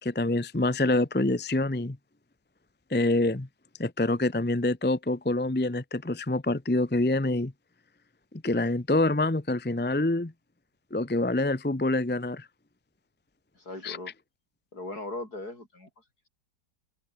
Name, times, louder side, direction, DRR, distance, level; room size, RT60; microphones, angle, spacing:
voice 1, 0.0-2.0 2.9-3.5 3.8-7.5 8.4-10.3 10.9-12.5 13.8-14.0, left 2 dB, 10° left, 0.7 m, -26 dB
voice 2, 13.6-14.1 14.7-15.9, left 2 dB, 55° left, 7.3 m, -38 dB
omnidirectional pair, 1.9 m